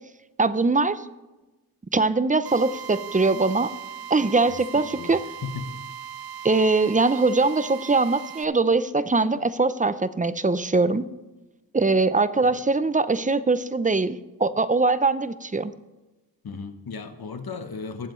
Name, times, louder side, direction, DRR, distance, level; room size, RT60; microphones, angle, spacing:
voice 1, 0.4-1.0 1.9-3.7 4.1-5.2 6.4-11.0 11.7-15.7, right 3 dB, 20° right, 13 dB, 0.5 m, -22 dB
Drill, 2.5-8.5, right 9 dB, 85° right, 0.5 m, -39 dB
voice 2, 4.7-5.1 5.4-5.8 12.4-12.5 16.4-18.1, left 5 dB, 85° left, 8 dB, 1.1 m, -35 dB
20.5 x 7.6 x 3.2 m, 1.1 s
wide cardioid pair, 80°, 36 cm